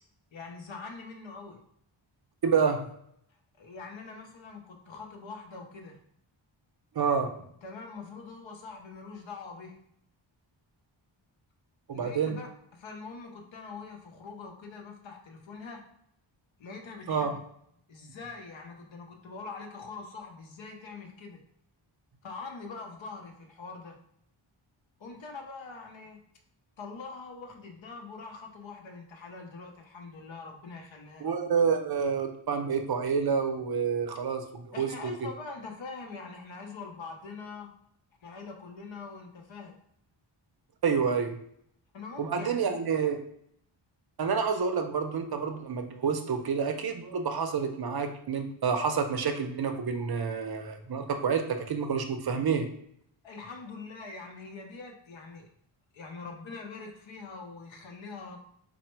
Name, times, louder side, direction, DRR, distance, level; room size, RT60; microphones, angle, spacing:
voice 1, 0.3-1.6 3.6-6.0 7.6-9.8 11.9-15.9 16.6-17.4 17.9-21.4 22.2-24.0 25.0-26.2 26.8-31.3 34.7-37.7 38.2-39.8 41.9-42.7 53.2-55.5 55.9-58.4, left 4 dB, 70° left, 3 dB, 0.8 m, -43 dB
voice 2, 2.4-2.9 6.9-7.3 11.9-12.4 17.1-17.4 31.2-35.1 40.8-41.4 42.2-43.2 44.2-52.7, right 6 dB, 50° right, 6 dB, 0.5 m, -28 dB
4.1 x 2.1 x 4.4 m, 0.70 s
wide cardioid pair, 115°, 48 cm